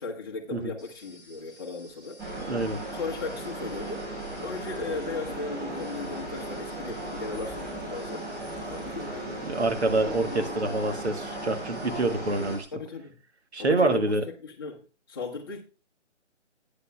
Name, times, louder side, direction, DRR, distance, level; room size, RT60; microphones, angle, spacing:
voice 1, 0.0-2.2 2.9-4.1 4.4-8.3 8.7-9.4 12.7-13.2 13.6-15.6, left 4 dB, 20° left, 1.1 m, -36 dB
sound 1, 0.8-12.7, left 1 dB, 15° right, 5.6 m, -53 dB
Dresden station, 2.2-12.6, right 1 dB, 40° right, 5.2 m, -36 dB
voice 2, 2.5-2.8 9.4-12.7 13.5-14.2, right 2 dB, 60° right, 1.5 m, -26 dB
12.5 x 9.4 x 2.3 m
figure-of-eight pair, 150°, 37 cm